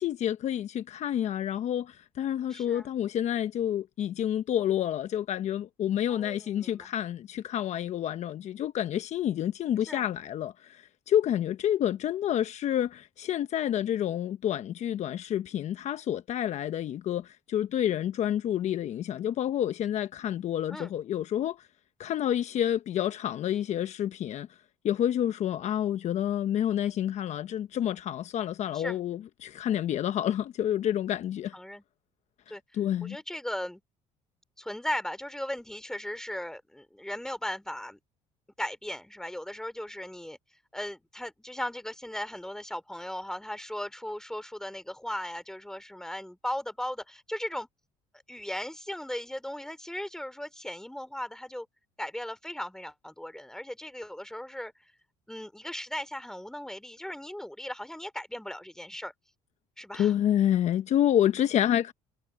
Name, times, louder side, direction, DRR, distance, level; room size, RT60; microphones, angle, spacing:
voice 1, 0.0-21.7 22.0-24.5 24.8-31.6 32.5-33.2 59.9-61.9, left 11 dB, 55° left, 1.0 m, -29 dB
voice 2, 2.5-2.9 6.1-6.9 9.9-10.1 20.7-21.0 28.7-29.0 31.5-31.8 32.5-32.6 33.0-33.8 34.6-38.0 38.6-40.4 40.7-47.7 48.3-51.7 52.0-54.7 55.3-59.1 59.8-60.1 61.3-61.8, left 1 dB, 5° left, 3.6 m, -37 dB
supercardioid pair, 95°, 14 cm